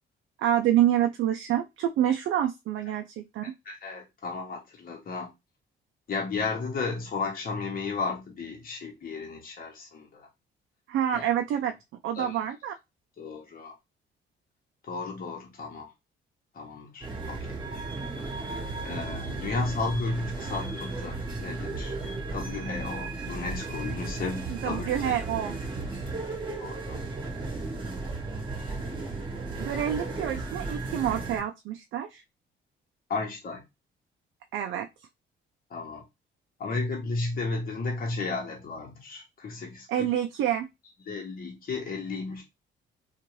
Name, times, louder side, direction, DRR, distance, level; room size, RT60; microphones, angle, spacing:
voice 1, 0.4-3.5 10.9-11.7 12.0-12.7 24.5-25.5 29.6-32.2 34.5-34.9 39.9-40.7, right 11 dB, 75° right, 0.4 m, -27 dB
voice 2, 3.4-5.3 6.1-10.3 11.1-11.2 12.2-12.4 13.2-13.7 14.8-15.9 16.5-17.6 18.2-18.3 18.8-21.9 22.3-25.1 26.6-27.0 33.1-33.6 35.7-36.0 36.6-40.1 41.1-42.4, left 3 dB, 45° left, 1.1 m, -34 dB
sound 1, 17.0-31.4, right 3 dB, 25° right, 1.2 m, -35 dB
2.7 x 2.4 x 3.0 m
cardioid pair, 90°, 20 cm